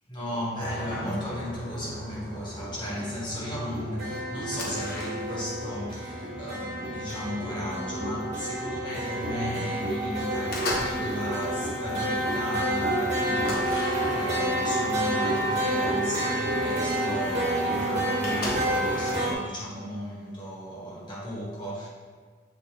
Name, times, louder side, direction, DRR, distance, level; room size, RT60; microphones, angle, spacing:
voice 1, 0.1-21.9, equal, 25° left, -6 dB, 1.8 m, -35 dB
sound 1, 0.6-19.3, right 1 dB, 35° right, 2.1 m, -29 dB
sound 2, 4.3-5.6 5.9-7.1 7.7-7.9 8.2-9.1 9.5-9.9 10.2-11.1 11.4-11.9 12.3-12.4 12.7-12.8 13.4-14.5 15.3-15.4 15.9-16.0 17.1-17.2 17.4-17.5 17.7-19.0, left 1 dB, 50° left, 1.3 m, -36 dB
7.4 x 6.3 x 3.4 m, 1.5 s
head